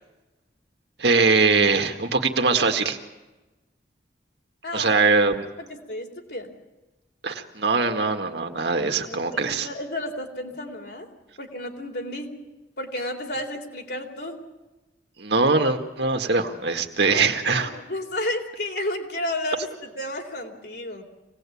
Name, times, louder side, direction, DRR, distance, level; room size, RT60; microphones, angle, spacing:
voice 1, 1.0-3.0 4.7-5.5 7.2-9.7 15.2-17.7, right 4 dB, 70° right, 4 dB, 1.9 m, -22 dB
voice 2, 4.6-5.1 5.6-6.5 9.0-11.1 11.4-12.4 12.8-14.4 17.0-21.0, left 1 dB, 65° left, 2 dB, 3.8 m, -32 dB
26.0 x 19.0 x 8.6 m, 1.1 s
head